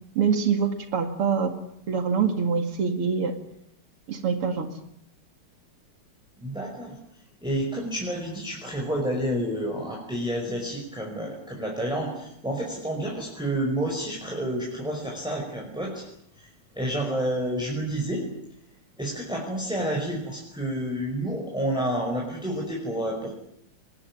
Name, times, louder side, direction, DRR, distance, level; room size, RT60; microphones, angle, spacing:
voice 1, 0.2-1.5 1.9-3.3 4.1-4.7, right 6 dB, 85° right, 6 dB, 3.1 m, -24 dB
voice 2, 6.4-6.9 7.4-16.0 16.8-18.2 19.0-23.4, right 1 dB, ahead, -2 dB, 5.4 m, -29 dB
24.0 x 20.0 x 9.9 m, 0.73 s
omnidirectional pair, 2.4 m